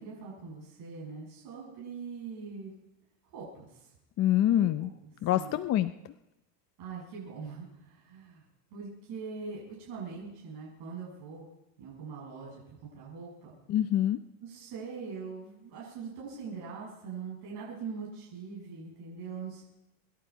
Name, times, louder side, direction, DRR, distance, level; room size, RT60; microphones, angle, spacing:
voice 1, 0.0-2.7 3.3-3.9 4.4-4.7 5.3-5.6 6.8-8.4 8.7-11.5 11.8-13.5 14.4-19.6, right 5 dB, 55° right, -5 dB, 7.3 m, -42 dB
voice 2, 4.2-4.9 5.2-6.1 13.7-14.2, left 12 dB, 35° left, 10 dB, 0.7 m, -26 dB
25.5 x 11.5 x 4.8 m, 0.93 s
supercardioid pair, 120°, 44 cm